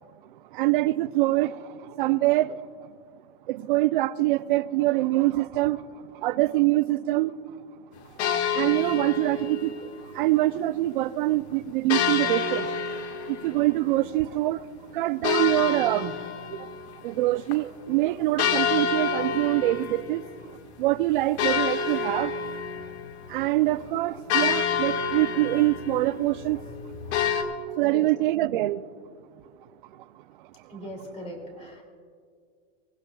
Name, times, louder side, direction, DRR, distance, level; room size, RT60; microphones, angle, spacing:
voice 1, 0.5-1.7 2.0-2.6 3.5-5.8 6.2-7.3 8.5-9.7 10.1-12.7 13.3-14.6 14.9-16.1 17.0-20.2 20.8-22.3 23.3-26.6 27.8-28.8, right 17 dB, 50° right, 0.5 m, -24 dB
sound 1, 8.2-9.9 11.9-14.3 15.2-17.2 17.5-17.6 18.4-20.4 20.8-20.9 21.4-27.4, left 6 dB, 75° left, 1.7 m, -28 dB
voice 2, 30.7-31.8, equal, 20° left, 2.6 m, -39 dB
27.0 x 15.5 x 2.3 m
supercardioid pair, 165°, 33 cm